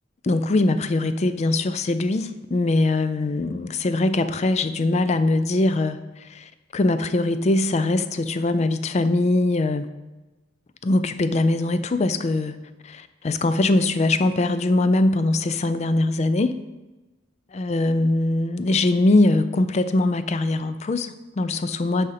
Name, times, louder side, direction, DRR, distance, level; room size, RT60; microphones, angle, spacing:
voice 1, 0.2-9.9 10.8-12.6 12.8-16.5 17.5-22.1, left 2 dB, 35° left, 12 dB, 0.4 m, -22 dB
6.5 x 5.1 x 5.8 m, 1.1 s
head